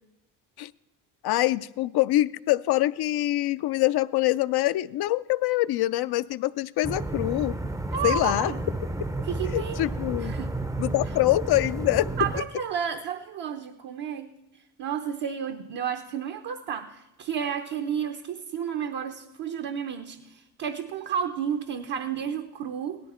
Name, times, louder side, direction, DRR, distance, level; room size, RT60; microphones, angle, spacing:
voice 1, 1.2-7.6 8.0-8.5 9.5-10.3 10.8-12.1, left 16 dB, 60° left, 14 dB, 0.5 m, -24 dB
sound 1, 6.8-12.4, right 2 dB, 5° right, 0.6 m, -32 dB
voice 2, 7.9-8.6 9.3-9.8 10.2-10.5 12.2-14.3 14.8-23.0, right 7 dB, 60° right, 6 dB, 1.0 m, -31 dB
17.0 x 12.5 x 4.3 m, 0.95 s
supercardioid pair, 75°, 46 cm